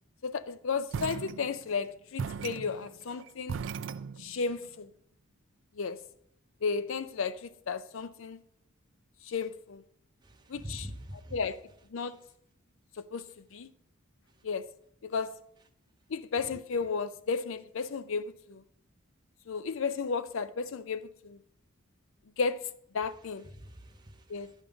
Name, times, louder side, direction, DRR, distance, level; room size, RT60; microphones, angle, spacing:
voice 1, 0.2-3.6 4.2-4.9 5.8-6.0 6.6-8.4 9.2-9.8 10.5-10.9 11.3-11.6 11.9-12.2 13.0-13.7 14.4-14.7 15.0-15.4 16.1-18.6 19.5-21.4 22.4-23.5 24.3-24.5, left 5 dB, 65° left, 0.5 m, -34 dB
sound 1, 0.9-1.8 2.2-4.5, right 6 dB, 60° right, 0.3 m, -38 dB
voice 2, 10.2-11.4 23.4-24.5, equal, 20° right, 0.7 m, -45 dB
9.9 x 5.3 x 5.0 m
head